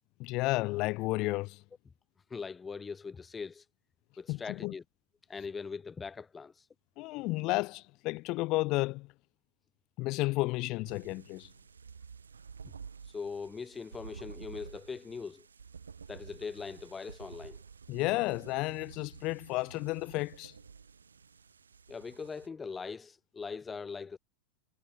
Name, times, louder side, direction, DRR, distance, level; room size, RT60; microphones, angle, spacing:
voice 1, 0.2-1.6 4.3-4.7 7.0-9.1 10.0-11.5 17.9-20.6, left 22 dB, 40° left, 0.3 m, -32 dB
voice 2, 2.3-3.6 4.2-4.8 5.3-6.6 13.1-15.5 16.1-17.6 21.9-24.2, left 5 dB, 15° left, 1.0 m, -41 dB
sound 1, 10.8-22.5, right 6 dB, 70° right, 2.6 m, -51 dB
figure-of-eight pair, 90°, 0 cm